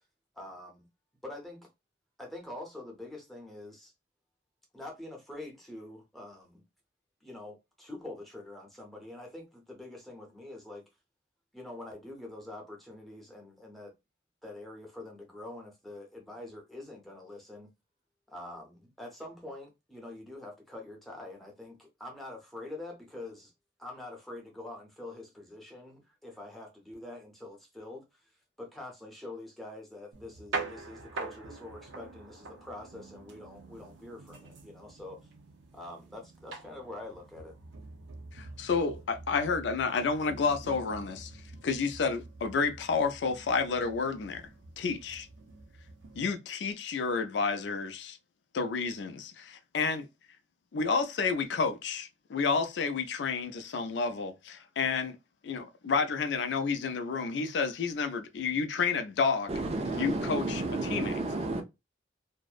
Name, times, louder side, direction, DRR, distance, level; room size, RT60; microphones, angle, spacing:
voice 1, 0.3-0.9 1.2-1.7 2.2-3.9 4.7-6.6 7.2-10.9 11.5-13.9 14.4-17.7 18.3-23.5 23.8-28.2 28.6-35.3 35.7-37.6, left 2 dB, ahead, 0.7 m, -45 dB
sound 1, 30.1-46.3, right 3 dB, 90° right, 0.5 m, -45 dB
voice 2, 38.3-41.3 41.6-44.5 44.8-45.3 46.2-48.2 48.5-50.1 50.7-55.2 55.4-59.5 60.0-60.6 60.9-61.1, left 5 dB, 75° left, 0.4 m, -30 dB
voice 3, 59.5-61.6, right 2 dB, 35° right, 0.4 m, -32 dB
2.6 x 2.0 x 2.3 m
head